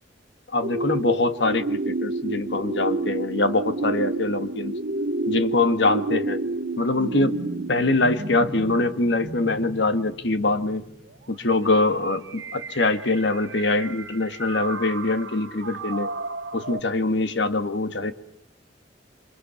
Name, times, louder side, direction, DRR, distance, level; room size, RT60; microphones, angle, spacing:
voice 1, 0.5-4.7 5.3-6.4 6.8-7.4 7.7-10.8 11.3-16.1 16.5-18.1, left 2 dB, 65° left, 10 dB, 1.8 m, -23 dB
sound 1, 0.6-16.8, right 2 dB, 70° right, 1.7 m, -31 dB
28.0 x 25.0 x 7.2 m, 0.72 s
head